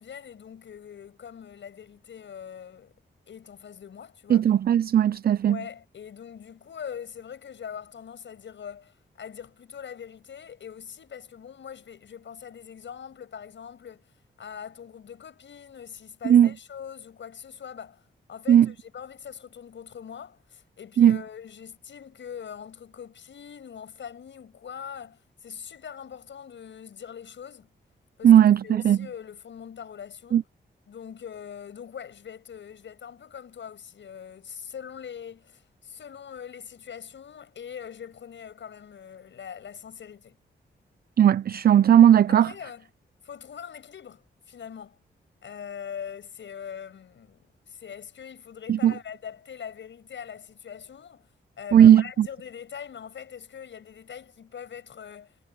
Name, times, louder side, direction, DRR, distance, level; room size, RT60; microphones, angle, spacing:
voice 1, 0.0-3.0 3.3-4.4 5.5-14.0 14.4-18.0 18.3-27.7 28.2-28.3 28.6-30.4 30.9-40.4 42.3-42.9 43.2-45.0 45.4-51.3 51.6-55.3, left 8 dB, 80° left, 7.4 m, -42 dB
voice 2, 4.3-5.6 16.2-16.5 18.5-18.7 21.0-21.2 28.2-29.0 30.3-30.4 41.2-42.5 48.7-48.9 51.7-52.3, right 10 dB, 55° right, 0.4 m, -17 dB
wide cardioid pair, 95°, 19 cm